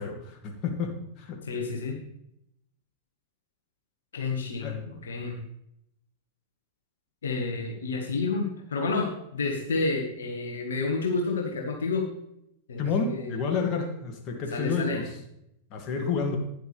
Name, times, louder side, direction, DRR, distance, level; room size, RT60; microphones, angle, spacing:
voice 1, 0.0-1.4 4.6-4.7 12.8-15.2 15.7-16.4, left 5 dB, 40° left, 3 dB, 2.2 m, -30 dB
voice 2, 1.5-2.0 4.1-5.4 7.2-12.1 12.7-12.8 13.1-13.3 14.5-15.0, left 3 dB, 75° left, 1 dB, 1.7 m, -30 dB
12.0 x 10.5 x 3.4 m, 0.79 s
figure-of-eight pair, 95°, 0 cm